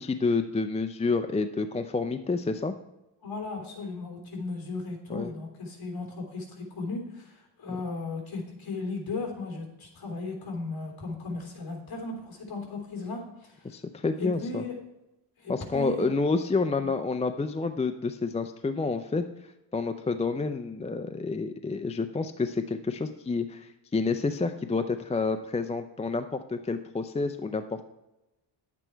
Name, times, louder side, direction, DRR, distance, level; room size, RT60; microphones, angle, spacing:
voice 1, 0.0-2.7 5.1-5.3 13.6-14.6 15.5-19.2 19.7-27.9, left 4 dB, 15° left, 8 dB, 0.4 m, -29 dB
voice 2, 3.2-13.8 14.2-14.7 15.4-16.1 16.8-16.9, left 3 dB, 50° left, 1 dB, 3.2 m, -36 dB
11.0 x 8.4 x 4.5 m, 0.94 s
cardioid pair, 115°, 46 cm